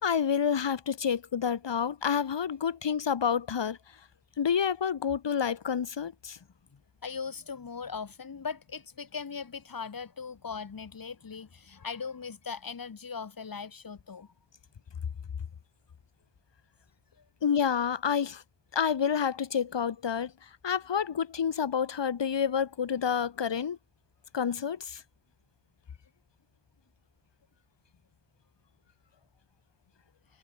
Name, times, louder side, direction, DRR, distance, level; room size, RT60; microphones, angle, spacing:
voice 1, 0.0-3.8 4.4-6.4 17.4-18.4 18.7-20.3 20.6-23.8 24.3-25.0, left 7 dB, 65° left, 2.4 m, -28 dB
voice 2, 6.7-14.3, left 5 dB, 50° left, 2.8 m, -39 dB
wide cardioid pair, 125°, 45 cm